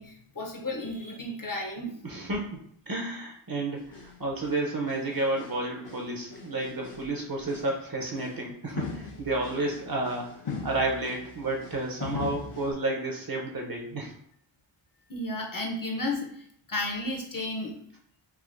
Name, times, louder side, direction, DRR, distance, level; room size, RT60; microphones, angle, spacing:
voice 1, 0.0-2.0 15.1-17.8, left 1 dB, 40° left, 1 dB, 0.8 m, -33 dB
voice 2, 2.0-10.3 10.6-14.1, right 2 dB, 45° right, 0 dB, 0.9 m, -31 dB
sound 1, 3.8-4.2 4.4-5.6 5.8-7.1 7.4-7.7 8.1-8.4 8.7-12.7, left 4 dB, 85° left, 0.9 m, -40 dB
3.6 x 2.6 x 2.5 m, 0.67 s
wide cardioid pair, 45°, 49 cm